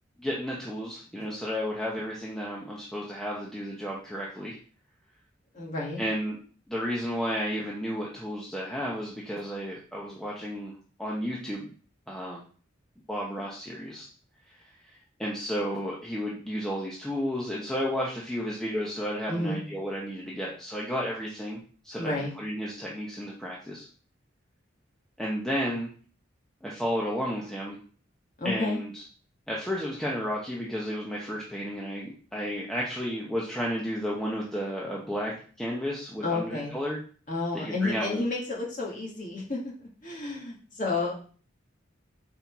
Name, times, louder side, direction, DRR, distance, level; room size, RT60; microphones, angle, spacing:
voice 1, 0.2-4.6 6.0-6.4 6.7-11.7 12.1-12.4 13.1-14.0 14.5-23.9 25.2-25.9 26.6-27.8 28.4-29.0 29.5-37.0 37.5-38.2, equal, 5° left, -4 dB, 0.9 m, -32 dB
voice 2, 5.5-6.0 19.3-19.6 22.0-22.3 28.4-28.8 36.2-36.8 37.3-39.7 40.0-41.1, left 2 dB, 40° left, -3 dB, 1.9 m, -31 dB
5.6 x 4.4 x 4.6 m, 0.43 s
head